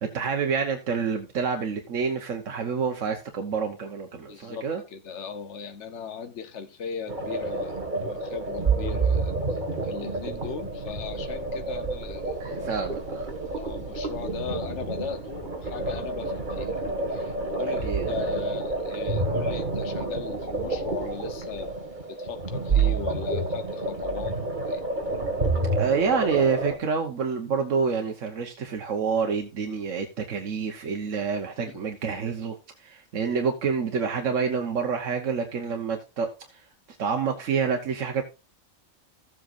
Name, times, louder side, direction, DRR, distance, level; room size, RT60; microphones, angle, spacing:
voice 1, 0.0-4.8 12.4-13.3 17.6-18.2 25.8-36.6 37.0-38.2, right 5 dB, 85° right, 1.4 m, -28 dB
voice 2, 4.3-12.3 12.7-12.8 13.5-16.8 17.1-21.7 22.1-24.8 31.7-31.8, left 6 dB, 70° left, 1.3 m, -38 dB
sound 1, 7.1-26.8, right 3 dB, 40° right, 2.0 m, -29 dB
15.0 x 7.7 x 2.5 m
omnidirectional pair, 1.3 m